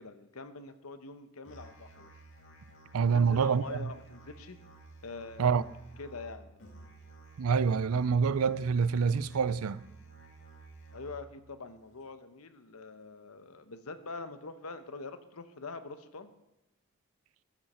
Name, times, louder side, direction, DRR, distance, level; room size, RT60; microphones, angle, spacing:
voice 1, 0.0-2.1 3.1-4.6 5.0-5.6 6.0-6.5 10.9-16.3, left 3 dB, 90° left, 1.0 m, -44 dB
Musical instrument, 1.4-11.4, right 3 dB, 60° left, 2.4 m, -53 dB
voice 2, 2.9-3.9 5.4-5.6 7.4-9.8, right 6 dB, 85° right, 0.5 m, -26 dB
14.5 x 10.5 x 4.3 m
head